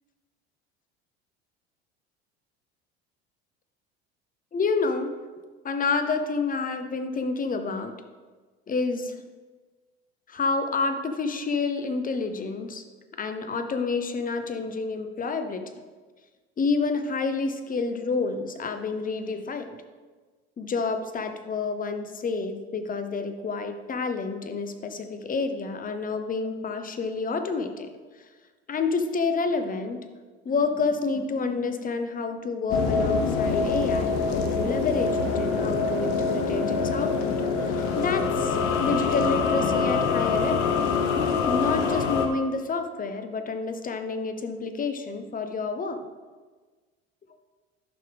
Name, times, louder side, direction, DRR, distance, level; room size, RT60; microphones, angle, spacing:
voice 1, 4.5-5.1 5.6-7.9 8.7-9.1 10.3-12.8 13.2-15.6 16.6-19.8 20.6-27.9 28.2-28.3 28.7-30.0 30.4-37.3 37.6-40.8 41.2-46.0, left 4 dB, 25° left, 8 dB, 0.9 m, -29 dB
sound 1, 32.7-42.3, left 4 dB, 60° left, 1.1 m, -25 dB
11.5 x 5.7 x 3.5 m, 1.4 s
hypercardioid pair, 70°, 31 cm